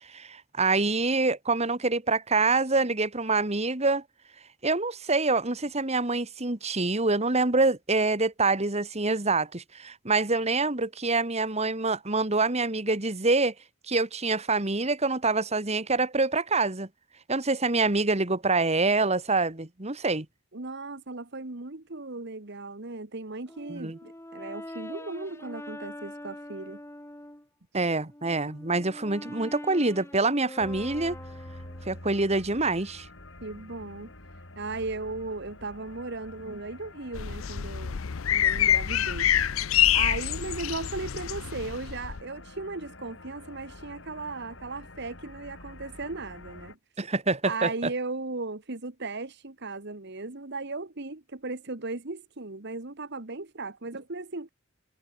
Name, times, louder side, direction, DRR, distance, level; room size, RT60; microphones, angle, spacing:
voice 1, 0.1-4.0 4.6-13.5 13.9-16.9 17.3-20.3 23.7-24.0 27.7-31.2 31.9-33.1 47.0-47.7, right 3 dB, 30° right, 2.2 m, -26 dB
voice 2, 20.5-26.8 33.4-34.1 34.5-38.0 38.3-39.3 39.9-46.8 47.4-54.5, right 3 dB, 55° right, 1.6 m, -37 dB
Brass instrument, 23.5-27.5 28.0-32.1, left 1 dB, 15° left, 2.6 m, -44 dB
sound 1, 30.6-46.8, left 2 dB, 65° left, 4.8 m, -48 dB
sound 2, 37.1-42.2, left 11 dB, 85° left, 0.6 m, -26 dB
head